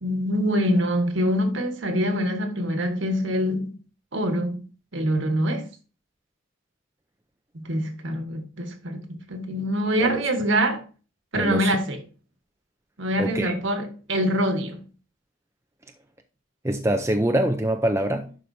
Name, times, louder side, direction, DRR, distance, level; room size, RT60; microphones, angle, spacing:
voice 1, 0.0-3.8 4.1-5.7 7.5-10.8 11.3-12.0 13.0-14.9, equal, 65° right, 1.4 m, -25 dB
voice 2, 11.4-11.7 13.2-13.5 16.6-18.3, right 1 dB, 15° right, 0.5 m, -24 dB
11.0 x 5.0 x 2.7 m
head